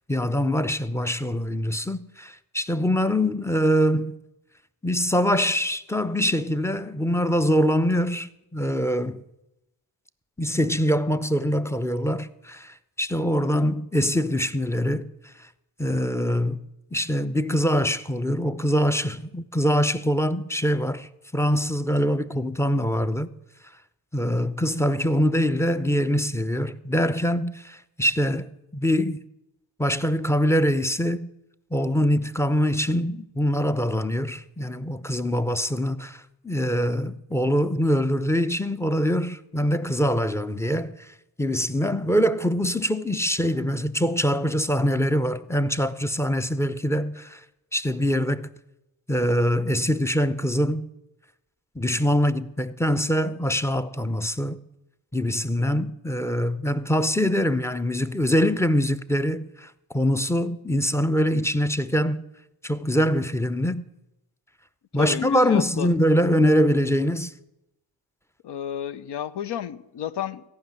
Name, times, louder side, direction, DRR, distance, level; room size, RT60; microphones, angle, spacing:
voice 1, 0.1-4.2 4.8-9.2 10.4-15.1 15.4-15.5 15.8-16.7 16.9-23.3 24.1-29.2 29.8-31.3 31.7-41.1 41.4-47.4 47.7-48.5 49.1-50.9 51.8-54.6 55.1-62.2 62.6-63.8 64.9-67.3, equal, 5° left, 0.6 m, -24 dB
voice 2, 64.9-65.9 68.4-70.4, left 9 dB, 60° left, 0.8 m, -31 dB
14.5 x 5.6 x 9.4 m
supercardioid pair, 55°, 47 cm